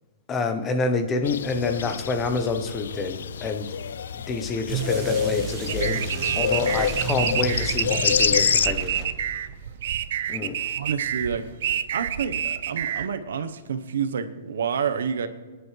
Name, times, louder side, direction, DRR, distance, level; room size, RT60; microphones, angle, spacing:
voice 1, 0.3-3.7 4.1-6.0 6.4-9.1 10.3-10.6, left 4 dB, 15° left, 7 dB, 0.8 m, -27 dB
sound 1, 1.2-8.7, left 7 dB, 80° left, 0.4 m, -27 dB
sound 2, 4.7-9.5, right 4 dB, 20° right, 1.3 m, -32 dB
sound 3, 5.7-13.1, right 10 dB, 50° right, 0.5 m, -28 dB
voice 2, 10.7-11.5 11.9-15.3, right 7 dB, 90° right, 9 dB, 1.0 m, -28 dB
25.5 x 10.5 x 3.3 m, 1.4 s
hypercardioid pair, 180°, 0 cm